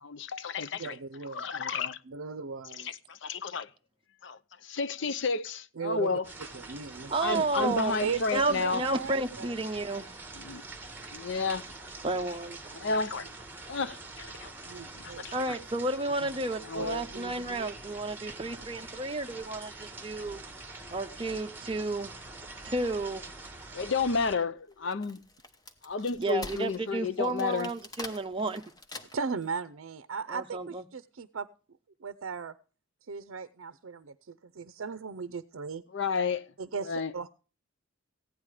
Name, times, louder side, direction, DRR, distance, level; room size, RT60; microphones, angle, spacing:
voice 1, 0.0-1.0 1.3-2.0 2.8-3.7 4.2-6.3 7.2-8.8 10.3-10.6 11.1-11.6 12.7-13.3 13.7-14.5 14.9-15.6 16.6-17.1 23.7-25.2 25.8-27.7 35.9-36.5 36.9-37.1, left 4 dB, 60° left, 0.6 m, -31 dB
voice 2, 0.8-1.5 2.1-3.0 5.8-6.1 6.5-9.6 12.7-13.0 13.9-14.0 14.6-15.5 16.2-16.3 16.8-17.7 29.1-31.5 32.0-32.5 33.1-35.8 36.6-37.3, right 5 dB, 80° right, 0.5 m, -37 dB
sound 1, 6.2-24.3, right 3 dB, 10° right, 1.6 m, -45 dB
voice 3, 7.1-8.0 8.3-10.1 12.0-12.6 15.3-20.4 20.9-22.1 22.6-23.2 26.2-28.6 30.3-30.8, right 2 dB, 25° right, 0.6 m, -32 dB
Wood, 24.7-29.4, left 2 dB, 20° left, 0.9 m, -45 dB
15.5 x 10.0 x 4.8 m
head